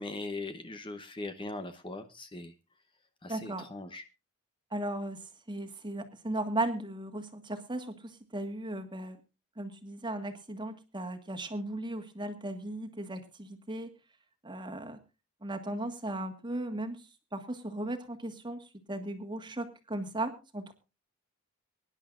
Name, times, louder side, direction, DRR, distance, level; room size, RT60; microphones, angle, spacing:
voice 1, 0.0-2.5 3.2-4.0, left 2 dB, 20° left, 8 dB, 0.8 m, -40 dB
voice 2, 3.3-3.7 4.7-5.2 5.5-9.2 9.6-13.9 14.4-15.0 15.4-17.0 17.3-20.7, right 1 dB, 20° right, 5 dB, 1.6 m, -36 dB
23.5 x 10.5 x 2.5 m, 0.28 s
head